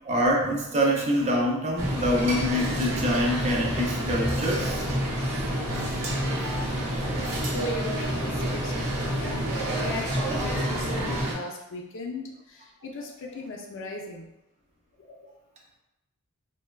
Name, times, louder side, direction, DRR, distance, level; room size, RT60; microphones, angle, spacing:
voice 1, 0.0-4.9, equal, 30° right, -1 dB, 0.5 m, -25 dB
sound 1, 1.8-11.3, equal, 85° right, 0.8 m, -28 dB
voice 2, 7.5-9.5 9.8-12.3 12.8-14.3 15.1-15.3, left 2 dB, 60° left, 0 dB, 0.5 m, -37 dB
3.3 x 2.2 x 2.2 m, 0.90 s
head